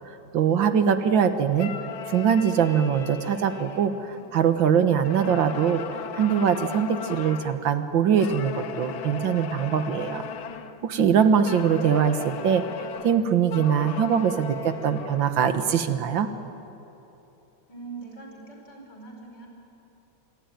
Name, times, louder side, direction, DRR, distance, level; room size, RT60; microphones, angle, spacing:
voice 1, 0.3-1.7 2.1-5.8 6.1-10.2 10.8-12.6 13.0-16.3, right 7 dB, 75° right, 9 dB, 1.9 m, -22 dB
sound 1, 1.5-4.6 5.0-7.6 8.2-10.8 11.4-15.7, left 7 dB, 90° left, 1.8 m, -38 dB
voice 2, 17.7-19.5, right 4 dB, 60° left, 1 dB, 5.9 m, -42 dB
26.5 x 23.5 x 9.3 m, 3.0 s
omnidirectional pair, 2.1 m